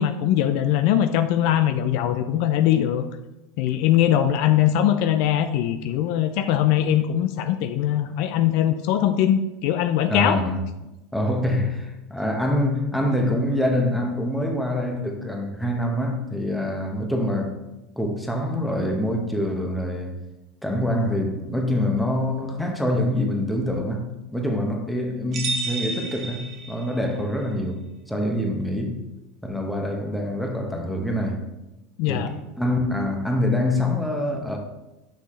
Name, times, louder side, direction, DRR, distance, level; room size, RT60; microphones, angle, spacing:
voice 1, 0.0-3.0 3.6-10.4 32.0-32.3, left 11 dB, 65° left, 9 dB, 0.4 m, -21 dB
voice 2, 10.1-10.6 11.1-17.6 18.0-20.1 20.6-24.1 24.3-27.8 28.1-29.0 29.4-31.4 32.1-34.6, left 1 dB, 5° left, 2 dB, 1.1 m, -25 dB
sound 1, 25.3-27.1, right 3 dB, 40° right, 1.1 m, -31 dB
6.2 x 5.6 x 3.2 m, 0.99 s
supercardioid pair, 110°, 0 cm